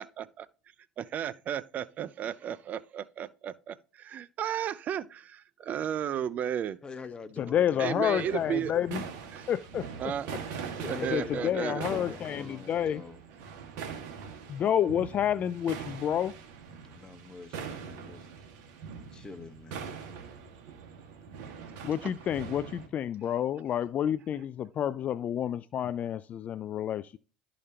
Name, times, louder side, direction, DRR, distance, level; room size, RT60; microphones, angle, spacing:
voice 1, 0.0-0.5 1.0-6.8 7.8-8.7 9.3-9.5 10.0-10.3 10.9-11.9 21.9-22.1, right 9 dB, 45° right, 0.5 m, -34 dB
voice 2, 6.8-8.2 10.8-11.5 11.9-13.2 16.8-18.3 19.1-19.8, left 4 dB, 20° left, 1.1 m, -44 dB
voice 3, 7.4-9.0 9.5-9.9 11.1-13.0 14.5-16.3 21.8-27.2, left 10 dB, 40° left, 0.3 m, -29 dB
sound 1, 8.1-22.9, right 6 dB, 65° right, 1.8 m, -42 dB
12.0 x 5.1 x 2.9 m
supercardioid pair, 90°, 4 cm